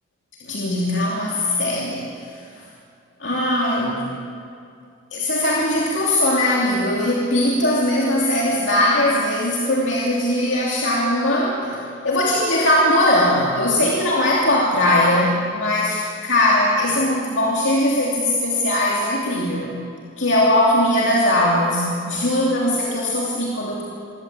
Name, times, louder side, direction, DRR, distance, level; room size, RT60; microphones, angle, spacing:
voice 1, 0.4-2.4 3.2-4.1 5.1-19.8 20.2-23.8, left 1 dB, 60° left, -4 dB, 3.0 m, -20 dB
24.5 x 15.5 x 8.6 m, 2.4 s
head